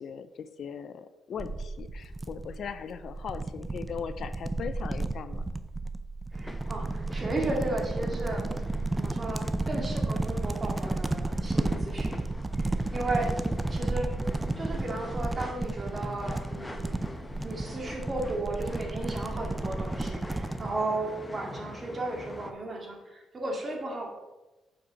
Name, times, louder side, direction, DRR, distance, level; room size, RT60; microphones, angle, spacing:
voice 1, 0.0-5.5, left 7 dB, 60° left, 12 dB, 0.5 m, -39 dB
sound 1, 1.4-20.7, right 2 dB, 15° right, 0.5 m, -32 dB
sound 2, 6.3-22.5, left 1 dB, 15° left, 0.8 m, -43 dB
voice 2, 6.3-8.5 8.9-13.3 13.7-14.1 14.6-17.0 17.4-24.1, right 2 dB, 30° right, 1 dB, 2.2 m, -34 dB
7.2 x 5.8 x 5.2 m, 1.1 s
cardioid pair, 90°, 0 cm